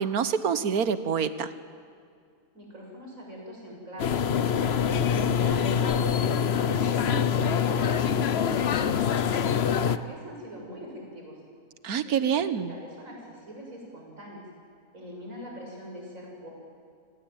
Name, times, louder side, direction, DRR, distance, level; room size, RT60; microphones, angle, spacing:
voice 1, 0.0-1.5 11.8-12.7, right 7 dB, 75° right, 12 dB, 1.5 m, -26 dB
voice 2, 2.5-4.3 4.7-8.1 8.5-11.4 12.0-14.4 14.9-16.5, equal, 60° right, -1 dB, 7.5 m, -42 dB
sound 1, 4.0-10.0, left 7 dB, 50° left, 0.9 m, -25 dB
29.5 x 19.0 x 9.1 m, 2.3 s
omnidirectional pair, 1.6 m